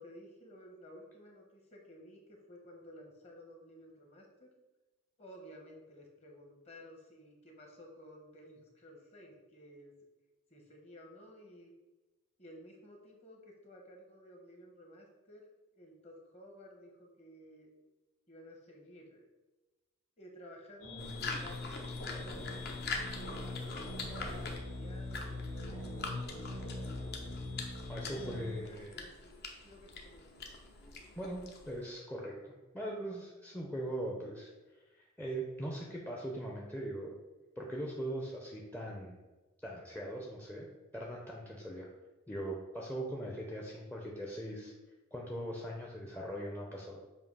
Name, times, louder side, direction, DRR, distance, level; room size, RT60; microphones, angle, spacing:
voice 1, 0.0-4.5 5.2-9.9 10.5-11.7 12.4-15.4 15.7-17.7 18.3-19.3 20.2-26.8 28.0-29.4 29.6-30.6, equal, 30° left, 1 dB, 1.1 m, -54 dB
sound 1, 20.8-28.6, left 2 dB, 70° left, 1.8 m, -42 dB
sound 2, 21.0-31.8, left 3 dB, 45° left, 0.8 m, -44 dB
voice 2, 27.9-29.0 31.2-34.5 34.9-37.1 37.6-39.2 39.6-40.7 40.9-41.9 42.3-44.7 45.1-47.0, right 1 dB, 10° left, -2 dB, 0.6 m, -40 dB
7.4 x 2.8 x 5.4 m, 1.1 s
head